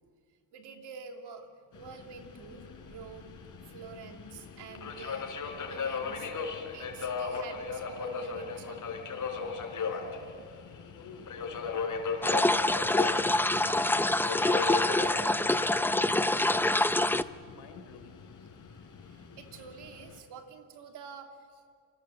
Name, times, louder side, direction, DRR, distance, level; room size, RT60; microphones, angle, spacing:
voice 1, 0.5-1.5 1.7-5.2 5.7-6.3 6.7-9.4 19.0-21.7, right 5 dB, 80° right, 3 dB, 3.0 m, -48 dB
Subway metro underground, 1.7-20.2, left 5 dB, 50° left, 4.3 m, -38 dB
voice 2, 10.9-14.7 15.0-18.2, left 5 dB, 85° left, 7 dB, 3.9 m, -53 dB
sound 1, 12.2-17.2, left 1 dB, 5° left, 0.6 m, -26 dB
29.0 x 24.0 x 7.1 m, 2.1 s
cardioid pair, 95°, 40 cm